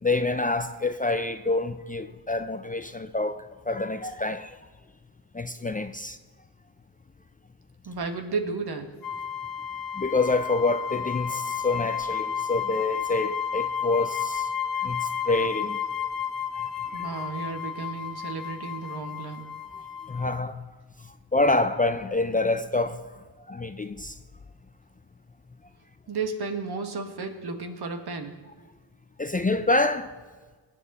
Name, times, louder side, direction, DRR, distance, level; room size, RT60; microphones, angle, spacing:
voice 1, 0.0-4.6 5.3-6.2 9.9-15.8 16.5-17.1 19.7-20.6 21.0-24.2 29.2-30.1, left 2 dB, 20° left, 0.6 m, -27 dB
voice 2, 7.9-8.9 16.9-19.4 26.1-28.3, right 4 dB, 55° right, 1.9 m, -33 dB
sound 1, 9.0-20.5, left 7 dB, 50° left, 0.9 m, -32 dB
20.5 x 8.2 x 4.2 m
cardioid pair, 65°, 46 cm